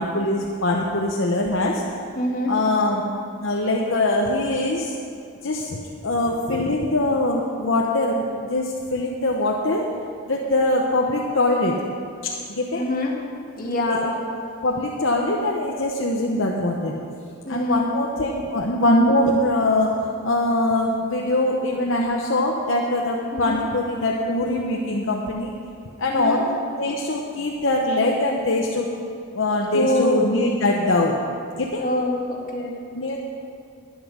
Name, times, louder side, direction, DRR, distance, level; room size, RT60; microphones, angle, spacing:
voice 1, 0.0-1.8 2.5-3.0 3.4-5.0 5.4-9.8 10.3-11.7 12.2-12.9 13.8-14.1 14.6-16.9 17.5-20.0 20.2-25.5 26.0-26.4 26.8-28.9 29.3-31.2 31.6-31.8 32.9-33.2, left 2 dB, 60° left, -1 dB, 0.9 m, -22 dB
voice 2, 2.2-2.5 12.7-13.2 13.6-14.2 17.5-17.9 23.3-23.6 26.1-26.4 29.7-30.3 31.8-32.8, left 1 dB, 40° left, -1 dB, 1.8 m, -24 dB
11.5 x 10.0 x 6.3 m, 2.5 s
head